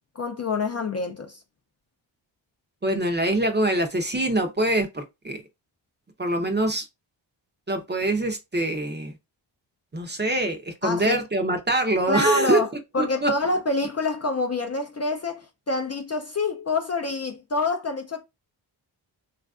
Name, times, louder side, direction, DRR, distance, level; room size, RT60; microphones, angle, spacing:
voice 1, 0.2-1.4 10.8-11.2 12.1-12.7 12.9-18.2, left 3 dB, 35° left, 0.4 m, -26 dB
voice 2, 2.8-5.4 6.2-6.9 7.7-9.1 9.9-12.6 13.0-13.3, right 1 dB, 20° right, 0.5 m, -24 dB
3.2 x 2.4 x 2.3 m
wide cardioid pair, 75°, 48 cm